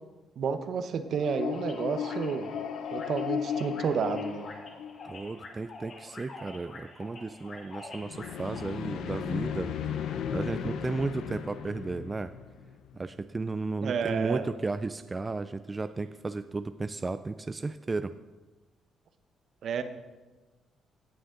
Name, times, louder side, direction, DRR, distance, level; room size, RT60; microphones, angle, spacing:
voice 1, 0.4-2.5 2.9-4.5 13.8-14.5 19.6-19.8, right 6 dB, 60° right, 10 dB, 0.9 m, -30 dB
sound 1, 1.1-5.4 8.0-13.0, left 7 dB, 80° left, 0.7 m, -35 dB
sound 2, 1.5-8.6, left 2 dB, 50° left, 2.4 m, -47 dB
voice 2, 5.0-9.7 10.3-12.3 12.9-18.1, right 3 dB, 25° right, 11 dB, 0.4 m, -34 dB
17.5 x 7.0 x 3.8 m, 1.2 s
cardioid pair, 90°, 0 cm